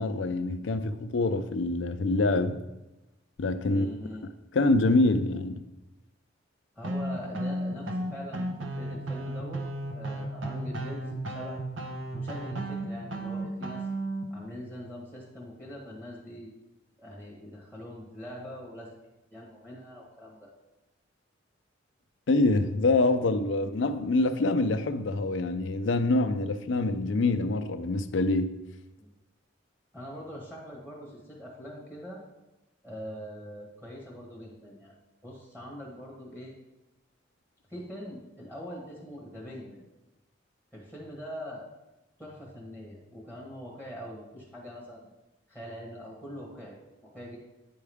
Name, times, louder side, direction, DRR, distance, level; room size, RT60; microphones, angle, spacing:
voice 1, 0.0-2.6 3.4-3.9 4.5-5.6 22.3-28.5, left 2 dB, 75° left, 0.5 m, -25 dB
voice 2, 3.7-4.3 6.7-8.5 8.8-9.6 9.9-11.6 12.1-13.9 14.3-16.5 17.0-20.5 29.0-29.1 29.9-32.2 32.8-34.9 35.2-36.5 37.7-39.8 40.7-41.7 42.2-45.1 45.5-46.8 47.0-47.4, equal, 10° right, 1.3 m, -43 dB
sound 1, 6.8-14.2, right 1 dB, 80° right, 0.9 m, -34 dB
9.3 x 4.6 x 3.5 m
head